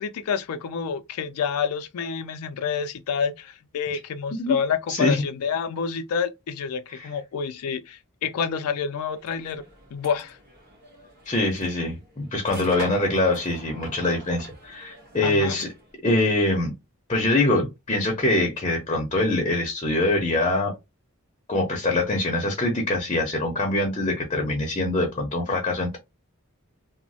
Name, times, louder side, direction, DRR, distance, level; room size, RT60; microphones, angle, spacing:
voice 1, 0.0-9.6 9.9-10.4 15.2-15.6, left 6 dB, 85° left, 0.3 m, -28 dB
voice 2, 4.9-5.2 6.9-7.1 11.3-15.7 16.0-16.7 17.1-20.7 21.5-26.0, left 2 dB, 25° left, 0.6 m, -24 dB
sound 1, 9.1-15.9, right 1 dB, 45° right, 1.3 m, -43 dB
3.0 x 2.0 x 2.7 m
head